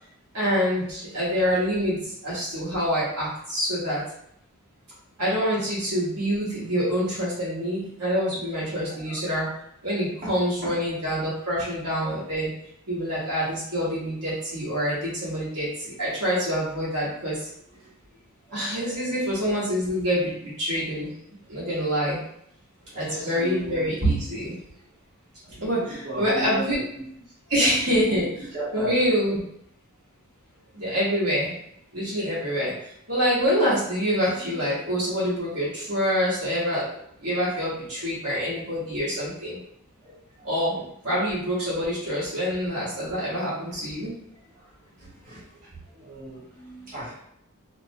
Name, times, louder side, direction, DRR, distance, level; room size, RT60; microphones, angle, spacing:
voice 1, 0.3-4.0 5.2-9.5 9.8-12.5 12.9-17.5 18.5-21.1 21.5-22.2 22.9-24.5 25.6-26.8 27.5-28.3 28.7-29.4 30.7-31.5 31.9-36.8 37.2-39.6 40.4-40.8 41.0-44.1 46.5-46.8, equal, 85° right, -8 dB, 1.1 m, -26 dB
voice 2, 18.5-18.9 22.9-24.1 25.4-27.0 27.8-28.2 28.5-28.9 40.0-40.8 43.0-43.1 44.6-44.7 45.0-45.4 45.9-46.4 46.9-47.2, right 2 dB, 40° right, -9 dB, 1.2 m, -33 dB
2.4 x 2.0 x 2.6 m, 0.72 s
head